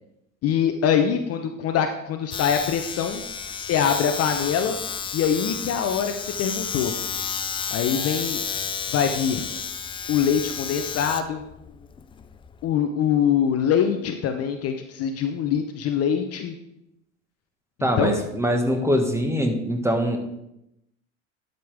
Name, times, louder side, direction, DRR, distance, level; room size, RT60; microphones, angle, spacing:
voice 1, 0.4-3.2 3.6-4.8 5.1-6.9 7.7-8.4 8.9-9.4 10.1-11.4 12.6-16.5 17.8-18.2, left 8 dB, 40° left, 7 dB, 0.7 m, -23 dB
Domestic sounds home sounds, 2.3-12.7, left 6 dB, 15° left, 0.3 m, -32 dB
voice 2, 17.8-20.2, equal, 5° right, 4 dB, 1.4 m, -23 dB
12.0 x 5.3 x 3.5 m, 0.84 s
hypercardioid pair, 75°, 38 cm